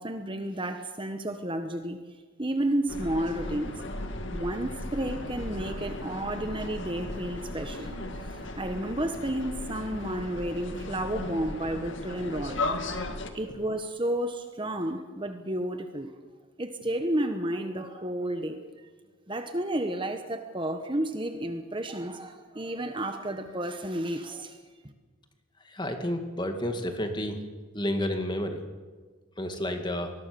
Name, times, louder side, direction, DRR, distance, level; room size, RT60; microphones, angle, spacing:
voice 1, 0.0-2.0 2.4-3.9 4.3-13.1 13.3-16.1 16.6-18.7 19.3-24.6, right 1 dB, 25° right, 7 dB, 1.2 m, -32 dB
sound 1, 2.9-13.3, left 2 dB, 60° left, 2.0 m, -36 dB
voice 2, 25.7-27.4 27.7-28.6 29.4-30.1, left 1 dB, 20° left, 5 dB, 2.2 m, -30 dB
24.5 x 20.0 x 7.0 m, 1.4 s
head